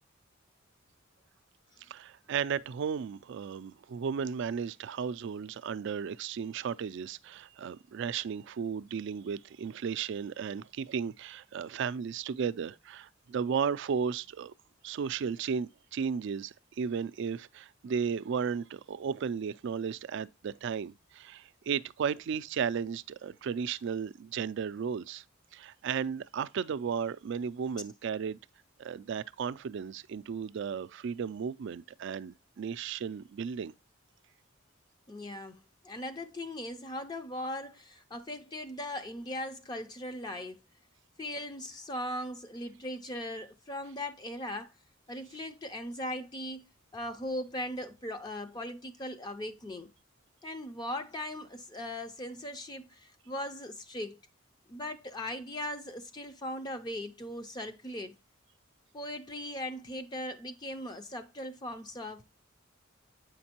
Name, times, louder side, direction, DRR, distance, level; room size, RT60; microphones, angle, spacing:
voice 1, 1.9-14.5 14.8-25.2 25.5-28.4 28.8-33.7, right 6 dB, 60° right, 0.3 m, -34 dB
voice 2, 35.1-40.6 41.2-44.7 45.1-49.9 50.4-54.2 54.7-58.2 58.9-62.2, left 1 dB, 20° left, 0.4 m, -39 dB
7.9 x 5.2 x 2.8 m
head